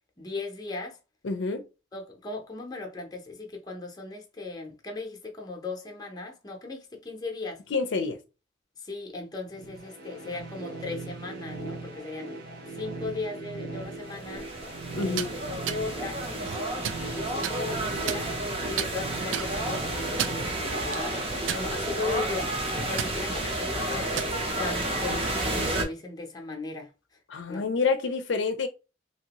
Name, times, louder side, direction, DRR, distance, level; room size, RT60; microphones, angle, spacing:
voice 1, 0.2-1.0 1.9-7.6 8.8-12.4 12.7-14.5 15.0-18.4 18.7-24.2 24.5-26.9 27.5-27.6, left 3 dB, 20° left, 0.7 m, -37 dB
voice 2, 1.2-1.7 7.7-8.2 15.0-15.3 27.3-28.7, left 4 dB, 75° left, 0.5 m, -27 dB
sound 1, 9.5-21.4, right 3 dB, 55° right, 1.1 m, -39 dB
sound 2, 14.0-25.8, right 1 dB, 30° right, 0.7 m, -31 dB
sound 3, 15.0-15.3 15.7-15.8 16.4-17.0 17.4-17.6 18.1-18.5 18.8-18.9 19.3-19.5 20.0-20.5 20.9-21.0 21.5-22.0 22.3-22.5 23.0-23.1 23.9-24.3, right 10 dB, 85° right, 0.3 m, -31 dB
2.9 x 2.7 x 2.9 m
head